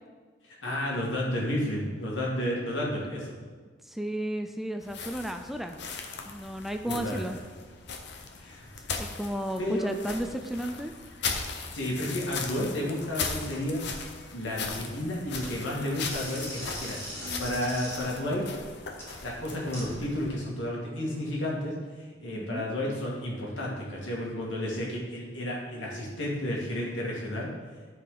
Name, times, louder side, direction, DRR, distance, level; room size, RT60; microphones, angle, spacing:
voice 1, 0.4-3.3 6.9-7.3 8.4-8.7 9.6-9.9 11.7-13.8 14.3-18.5 19.2-27.5, left 1 dB, 85° left, -4 dB, 2.2 m, -32 dB
voice 2, 3.9-5.8 6.3-7.4 9.0-10.9 22.4-22.6, equal, ahead, 5 dB, 0.3 m, -33 dB
sound 1, 4.8-20.3, left 5 dB, 65° left, 0.9 m, -38 dB
sound 2, 15.3-19.8, equal, 15° left, 1.9 m, -41 dB
13.5 x 4.7 x 3.9 m, 1.5 s
head